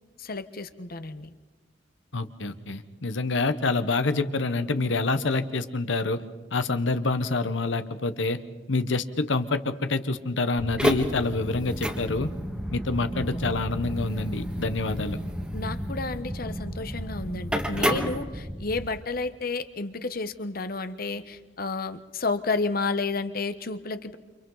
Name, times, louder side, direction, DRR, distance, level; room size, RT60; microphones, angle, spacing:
voice 1, 0.2-1.3 15.5-24.2, left 3 dB, 50° left, 11 dB, 1.0 m, -31 dB
voice 2, 2.1-6.2 6.5-8.4 8.7-12.3 12.7-15.2, left 3 dB, 80° left, 10 dB, 1.1 m, -27 dB
sound 1, 10.6-18.8, equal, 5° right, 1.6 m, -31 dB
29.5 x 27.0 x 4.0 m, 1.3 s
head